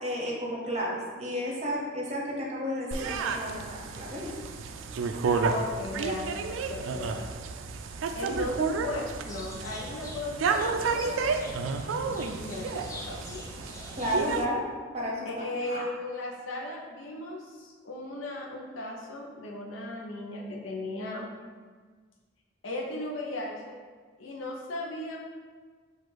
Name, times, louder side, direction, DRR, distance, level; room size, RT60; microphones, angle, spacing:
voice 1, 0.0-4.3 8.2-8.4 14.0-14.7 14.9-15.3 15.7-15.8, equal, 35° right, -2 dB, 0.7 m, -32 dB
sound 1, 2.9-14.4, right 4 dB, 85° right, 0.3 m, -31 dB
voice 2, 5.5-7.3 8.1-11.6 12.1-13.6 15.2-21.3 22.6-23.8 24.2-25.2, left 1 dB, 90° left, -2 dB, 0.6 m, -37 dB
sound 2, 9.2-14.2, left 1 dB, 15° left, 0.5 m, -44 dB
4.4 x 2.4 x 4.5 m, 1.5 s
head